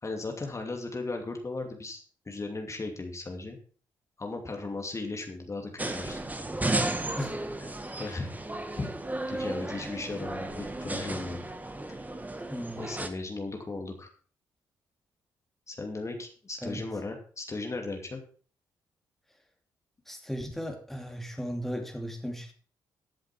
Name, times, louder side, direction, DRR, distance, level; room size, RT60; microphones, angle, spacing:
voice 1, 0.0-3.6 4.2-6.2 7.9-8.9 9.3-11.5 12.8-14.1 15.7-18.2, left 3 dB, 30° left, 3 dB, 2.6 m, -36 dB
sound 1, 5.8-13.1, right 2 dB, 15° right, 1.7 m, -34 dB
voice 2, 12.5-12.9 16.6-16.9 20.1-22.5, equal, 5° left, 3 dB, 2.7 m, -36 dB
14.5 x 7.8 x 4.6 m, 0.42 s
hypercardioid pair, 45°, 9 cm